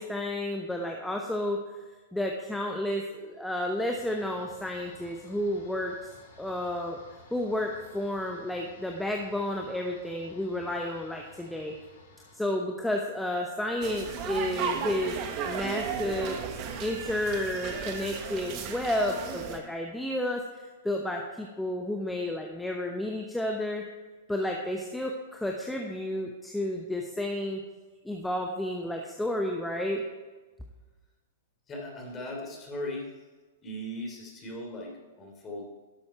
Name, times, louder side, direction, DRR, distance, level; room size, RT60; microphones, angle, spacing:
voice 1, 0.0-1.8 2.1-6.1 6.4-7.0 7.3-11.7 12.3-15.1 15.4-16.4 16.8-23.8 24.3-27.6 28.0-30.0, left 1 dB, 5° left, 1 dB, 0.9 m, -31 dB
sound 1, 3.9-12.4, left 4 dB, 60° left, 2.4 m, -55 dB
sound 2, 13.8-19.6, right 6 dB, 40° right, 1.2 m, -35 dB
voice 2, 31.7-33.1 33.6-35.7, left 1 dB, 25° left, 0 dB, 3.1 m, -38 dB
11.5 x 7.2 x 4.5 m, 1.3 s
hypercardioid pair, 115°, 0 cm